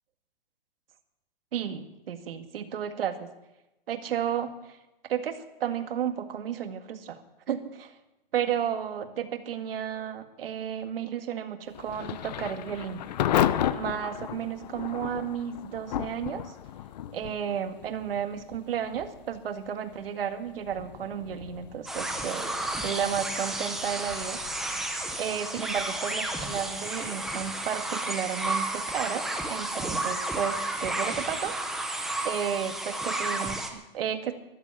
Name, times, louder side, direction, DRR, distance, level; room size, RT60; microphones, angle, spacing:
voice 1, 1.5-3.3 3.9-4.5 5.1-7.2 7.5-7.9 8.3-13.0 13.7-16.5 17.1-22.6 22.8-24.4 25.2-31.6 32.2-34.3, right 8 dB, 65° right, 8 dB, 2.0 m, -32 dB
Thunder / Rain, 11.7-28.4, left 11 dB, 45° left, 0.7 m, -35 dB
sound 1, 21.9-33.7, right 2 dB, ahead, 0.6 m, -32 dB
13.5 x 11.5 x 8.3 m, 0.97 s
hypercardioid pair, 165°, 31 cm